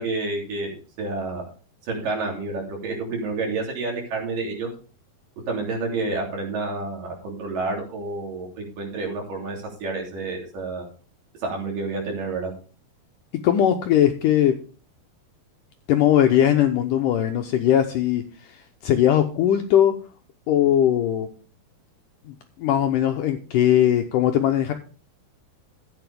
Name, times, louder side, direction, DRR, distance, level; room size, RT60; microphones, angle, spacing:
voice 1, 0.0-1.4 1.9-4.7 5.5-10.9 11.4-12.5, right 3 dB, 60° right, -1 dB, 4.7 m, -29 dB
voice 2, 13.4-14.6 15.9-18.6 18.8-20.0 20.5-21.3 22.3-24.7, left 10 dB, 75° left, 6 dB, 2.0 m, -20 dB
14.0 x 8.7 x 3.5 m, 0.37 s
omnidirectional pair, 4.5 m